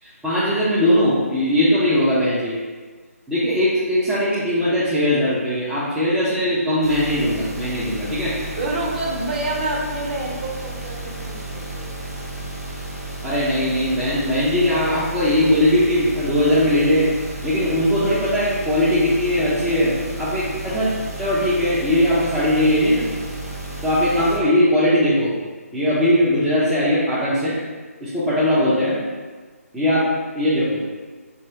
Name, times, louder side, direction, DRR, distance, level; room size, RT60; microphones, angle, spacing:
voice 1, 0.0-2.6 3.3-8.3 13.2-17.1 17.4-20.9 21.2-23.1 23.8-25.3 25.7-27.6 28.0-29.0 29.7-30.1 30.3-30.8, left 1 dB, 5° right, -12 dB, 0.4 m, -19 dB
sound 1, 6.8-24.4, right 2 dB, 85° right, 0.9 m, -33 dB
voice 2, 8.4-12.0, right 2 dB, 40° right, -3 dB, 0.8 m, -28 dB
2.9 x 2.8 x 4.2 m, 1.4 s
figure-of-eight pair, 145°, 8 cm